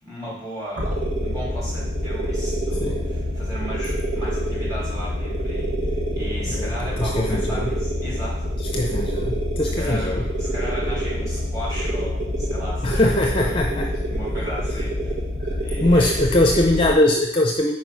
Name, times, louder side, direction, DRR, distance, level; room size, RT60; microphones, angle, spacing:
voice 1, 0.0-5.7 6.1-8.5 9.6-13.6 14.1-15.1 15.5-16.2, equal, 20° right, -8 dB, 3.2 m, -35 dB
sound 1, 0.8-17.0, equal, 65° right, 1.6 m, -26 dB
voice 2, 6.5-7.7 8.7-10.2 12.8-13.9 15.8-17.8, left 1 dB, 25° left, 1 dB, 0.6 m, -21 dB
5.3 x 4.9 x 6.1 m, 0.77 s
head